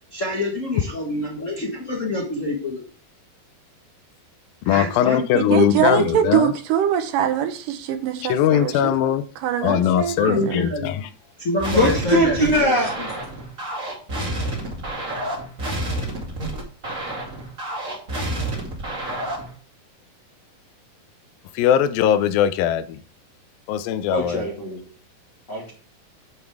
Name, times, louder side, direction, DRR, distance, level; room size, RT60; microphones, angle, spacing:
voice 1, 0.1-2.8 4.6-6.2 10.2-11.1 11.4-13.1, left 2 dB, 60° left, 0.7 m, -27 dB
voice 2, 4.6-6.5 8.3-9.2 9.6-11.0 21.5-23.0 23.7-24.5, left 10 dB, 85° left, 2.5 m, -20 dB
voice 3, 5.3-9.0 9.4-10.6, right 9 dB, 75° right, 2.6 m, -23 dB
sound 1, 11.6-19.5, right 1 dB, 25° right, 2.4 m, -29 dB
voice 4, 11.7-12.9 24.1-24.8 25.5-25.7, equal, 35° left, 2.3 m, -20 dB
9.5 x 7.9 x 3.5 m
omnidirectional pair, 4.0 m